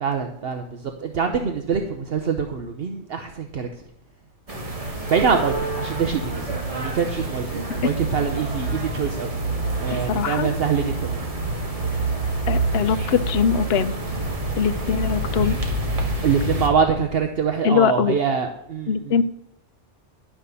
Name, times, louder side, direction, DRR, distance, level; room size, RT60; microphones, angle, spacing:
voice 1, 0.0-3.7 5.1-9.3 9.8-11.3 16.2-19.2, right 6 dB, 60° right, 5 dB, 1.0 m, -24 dB
sound 1, 4.5-16.7, right 2 dB, 30° right, 1.7 m, -27 dB
voice 2, 9.9-10.5 12.5-13.9 14.6-15.6 17.6-18.2 18.9-19.2, left 7 dB, 65° left, 11 dB, 0.9 m, -22 dB
11.0 x 5.9 x 6.9 m, 0.73 s
omnidirectional pair, 1.2 m